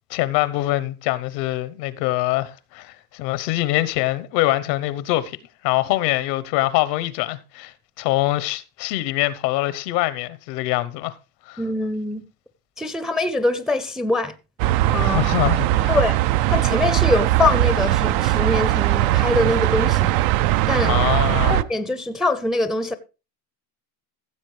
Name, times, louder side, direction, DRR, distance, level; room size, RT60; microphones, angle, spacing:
voice 1, 0.1-5.4 5.6-11.1 11.5-11.6 15.0-16.0 20.8-21.5, left 17 dB, 75° left, 0.9 m, -24 dB
voice 2, 11.6-12.2 12.8-14.3 14.9-15.3 15.9-16.2 16.4-20.2 20.7-21.0 21.5-23.0, left 2 dB, ahead, 0.5 m, -23 dB
sound 1, 14.6-21.6, right 15 dB, 65° right, 0.6 m, -20 dB
15.5 x 7.3 x 3.2 m
supercardioid pair, 110°, 49 cm